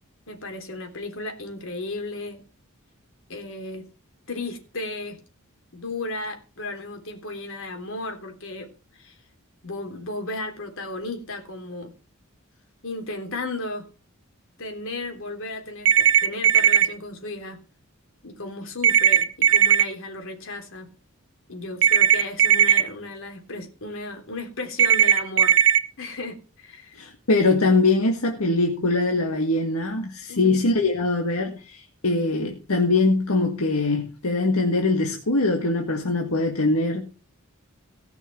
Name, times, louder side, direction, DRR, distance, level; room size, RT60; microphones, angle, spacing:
voice 1, 0.3-2.4 3.3-3.8 4.3-5.2 5.7-8.7 8.9-9.2 9.6-11.9 12.8-13.8 14.6-17.6 18.2-20.9 21.5-25.6 26.0-27.0 30.3-30.6, left 2 dB, 65° left, 4 dB, 3.5 m, -34 dB
sound 1, 15.9-16.9 18.8-19.8 21.8-22.8 24.8-25.8, right 9 dB, 60° right, 1.1 m, -17 dB
voice 2, 26.9-37.2, left 2 dB, 80° left, 2 dB, 1.8 m, -22 dB
18.0 x 6.3 x 5.9 m, 0.35 s
head